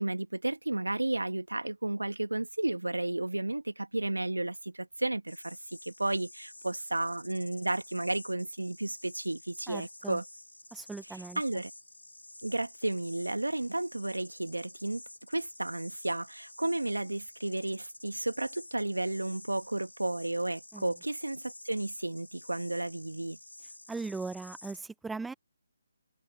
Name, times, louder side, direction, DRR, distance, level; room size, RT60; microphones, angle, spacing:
voice 1, 0.0-10.2 11.4-11.7 12.4-15.0 15.3-23.4, right 2 dB, 85° right, 1.8 m, -33 dB
sound 1, 5.3-24.8, left 2 dB, 85° left, 3.2 m, -51 dB
voice 2, 9.7-10.2 10.7-11.4 20.7-20.9 23.9-25.3, right 4 dB, 5° right, 0.6 m, -39 dB
figure-of-eight pair, 150°, 0 cm